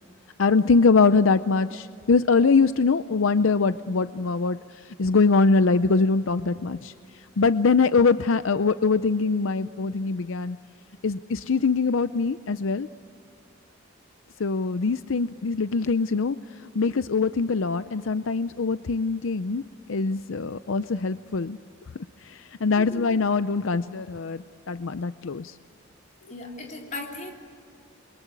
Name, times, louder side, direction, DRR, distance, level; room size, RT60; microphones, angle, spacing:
voice 1, 0.4-4.6 5.0-6.9 7.4-10.6 11.0-12.9 14.4-16.4 16.7-19.6 19.9-21.6 22.2-25.5, left 4 dB, 75° left, 12 dB, 0.6 m, -23 dB
voice 2, 22.8-23.1 26.3-27.3, left 2 dB, 40° left, 0 dB, 3.9 m, -37 dB
29.5 x 23.0 x 8.3 m, 2.4 s
head